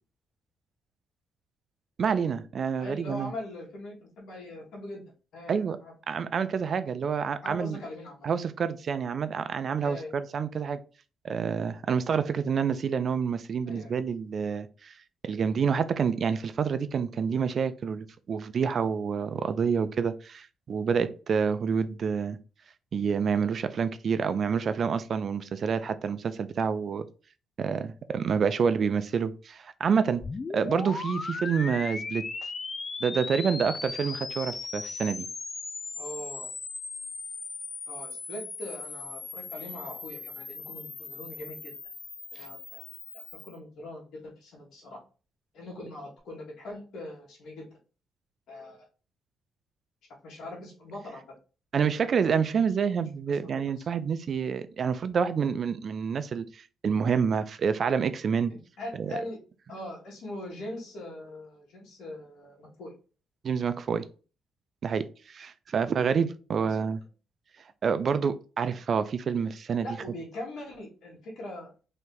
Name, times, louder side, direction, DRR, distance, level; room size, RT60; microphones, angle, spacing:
voice 1, 2.0-3.3 5.5-5.8 6.1-7.8 8.2-10.8 11.2-14.9 15.2-22.4 22.9-27.1 27.6-30.2 30.5-32.3 33.0-35.3 51.7-58.5 59.0-59.2 63.4-64.1 64.8-67.0 67.8-69.9, right 6 dB, 50° right, 0.4 m, -28 dB
voice 2, 2.8-5.0 5.3-5.9 7.4-8.3 9.8-10.1 13.7-13.9 35.9-36.5 37.9-41.7 42.3-42.8 43.1-45.0 45.5-47.7 48.5-48.8 50.2-51.2 53.3-53.8 58.5-59.4 59.7-62.9 66.6-66.9 69.8-71.7, left 1 dB, 75° left, 1.5 m, -41 dB
sound 1, 30.2-43.5, left 4 dB, 35° left, 0.4 m, -38 dB
3.2 x 2.7 x 3.8 m
cardioid pair, 90°, 0 cm